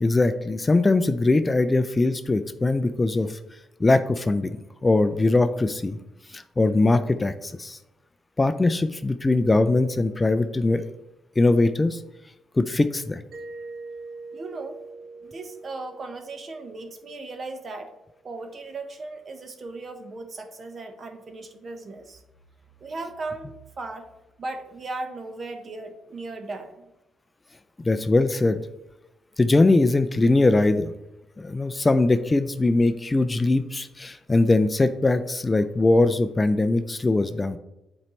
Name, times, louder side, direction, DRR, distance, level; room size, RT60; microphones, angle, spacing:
voice 1, 0.0-3.4 3.8-6.0 6.3-7.8 8.4-10.9 11.4-12.0 12.6-13.2 27.8-28.6 29.4-30.9 31.4-37.6, left 2 dB, 20° left, 11 dB, 0.4 m, -21 dB
Mallet percussion, 13.3-17.9, right 3 dB, 60° right, 1.0 m, -43 dB
voice 2, 14.3-14.8 15.2-17.9 18.2-22.2 22.8-24.1 24.4-26.9, right 3 dB, 40° right, 5 dB, 1.1 m, -37 dB
8.7 x 4.4 x 3.2 m, 0.93 s
cardioid pair, 90°, 0 cm